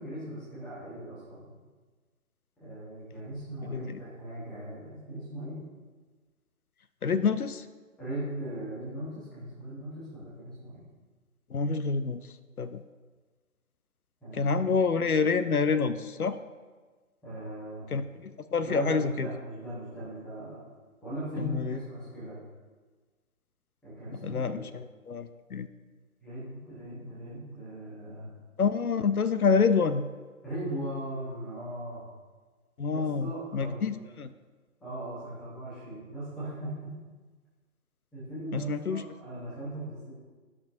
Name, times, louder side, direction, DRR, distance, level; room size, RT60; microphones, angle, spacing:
voice 1, 0.0-1.5 2.6-5.6 8.0-10.8 14.2-14.8 17.2-17.9 18.6-20.6 21.0-22.4 23.8-24.7 26.2-28.3 30.4-32.0 32.9-33.9 34.8-36.9 38.1-40.1, right 1 dB, ahead, -11 dB, 1.0 m, -39 dB
voice 2, 3.6-4.0 7.0-7.6 11.5-12.3 12.6-12.8 14.3-16.4 17.9-19.3 21.4-21.8 24.1-25.7 28.6-30.1 32.8-34.3 38.5-39.1, left 5 dB, 85° left, 12 dB, 0.6 m, -27 dB
13.0 x 5.9 x 2.6 m, 1.4 s
figure-of-eight pair, 145°, 43 cm